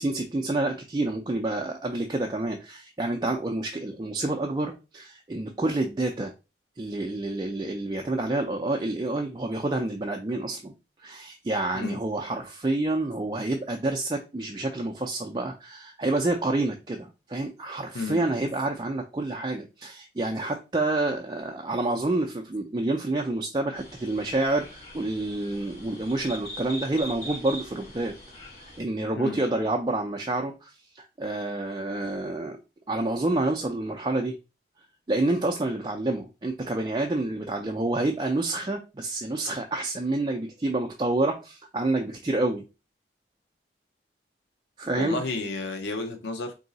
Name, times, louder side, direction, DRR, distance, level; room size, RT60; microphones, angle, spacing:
voice 1, 0.0-6.3 6.8-10.7 11.0-28.1 28.6-32.6 32.9-34.4 35.1-42.6 44.8-45.2, right 2 dB, 25° right, 0.4 m, -28 dB
sound 1, 23.7-28.8, equal, 35° left, 1.4 m, -42 dB
voice 2, 45.0-46.5, left 3 dB, 85° left, 0.6 m, -31 dB
3.8 x 2.7 x 3.9 m
head